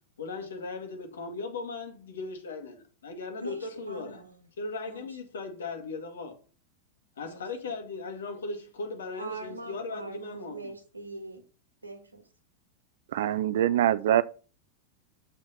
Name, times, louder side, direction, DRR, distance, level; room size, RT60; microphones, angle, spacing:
voice 1, 0.2-4.2 4.6-6.4 7.2-10.7, left 3 dB, 65° left, 2.1 m, -38 dB
voice 2, 3.4-4.5 4.9-5.0 7.2-7.4 9.2-11.4 11.8-12.3, right 3 dB, 80° right, 1.7 m, -42 dB
voice 3, 13.1-14.2, right 11 dB, 55° right, 0.5 m, -24 dB
7.4 x 5.2 x 5.6 m
figure-of-eight pair, 90°, 0 cm